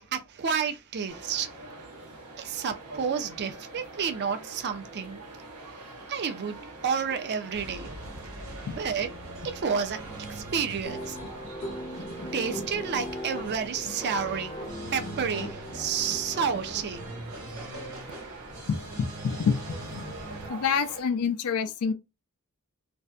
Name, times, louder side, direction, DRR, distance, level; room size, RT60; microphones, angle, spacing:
voice 1, 0.0-1.8 2.4-5.2 6.1-7.9 8.7-9.1 9.4-10.0 10.3-11.2 12.3-14.6 14.9-17.0, right 6 dB, 50° right, 0.4 m, -30 dB
sound 1, 1.1-21.0, right 2 dB, 90° right, 0.7 m, -45 dB
sound 2, 7.5-20.5, right 1 dB, 70° right, 1.3 m, -42 dB
sound 3, 10.8-16.8, left 1 dB, 30° left, 0.6 m, -39 dB
voice 2, 18.7-20.1 20.5-21.9, left 6 dB, 75° left, 0.4 m, -28 dB
2.6 x 2.1 x 2.3 m
head